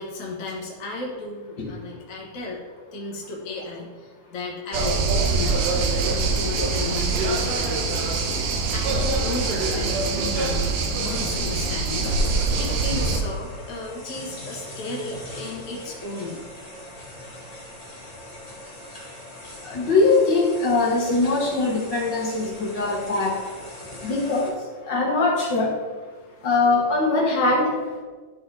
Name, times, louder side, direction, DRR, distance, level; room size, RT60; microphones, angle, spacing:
voice 1, 0.0-2.6 2.9-7.8 8.1-16.4, left 3 dB, 65° left, -2 dB, 0.8 m, -34 dB
sound 1, 4.7-13.2, right 3 dB, 75° right, 2.0 m, -24 dB
sound 2, 11.0-24.5, left 1 dB, 20° left, 1.1 m, -40 dB
voice 2, 19.6-23.4 24.0-24.6 24.8-25.7 26.4-27.8, left 3 dB, 45° left, -3 dB, 1.6 m, -21 dB
12.0 x 4.0 x 4.0 m, 1.4 s
omnidirectional pair, 3.4 m